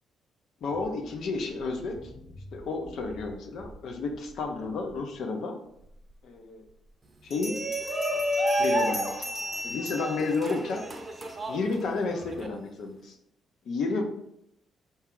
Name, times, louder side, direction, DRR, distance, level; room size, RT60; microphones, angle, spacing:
voice 1, 0.6-2.1 2.5-5.5 6.2-6.6 7.2-7.6 8.6-9.3 9.6-10.8 11.4-13.1 13.6-14.0, left 3 dB, 70° left, 4 dB, 0.8 m, -31 dB
sound 1, 0.6-5.3, left 1 dB, 15° left, 0.9 m, -48 dB
Bell, 6.1-6.2 7.3-11.2, equal, 50° left, 1.6 m, -37 dB
Shout, 7.3-12.5, equal, 25° right, 0.7 m, -30 dB
4.6 x 2.8 x 3.7 m, 0.77 s
cardioid pair, 90°, 0 cm